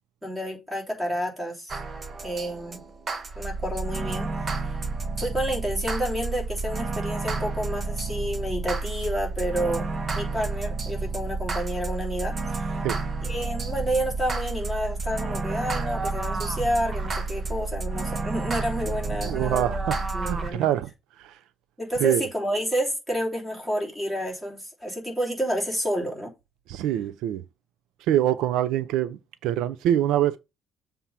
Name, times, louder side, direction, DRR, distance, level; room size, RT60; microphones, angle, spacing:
voice 1, 0.2-1.7 2.2-2.8 3.3-4.3 4.6-4.8 5.2-9.8 10.1-12.8 13.2-19.8 20.1-20.7 21.8-26.3, equal, 5° right, 3.0 m, -29 dB
sound 1, 1.7-20.5, right 3 dB, 30° right, 0.8 m, -30 dB
voice 2, 19.2-20.0 20.2-20.9 21.2-21.4 22.0-22.2 26.7-27.4 28.1-30.4, right 12 dB, 80° right, 0.5 m, -24 dB
7.3 x 3.5 x 5.6 m
cardioid pair, 140°, 0 cm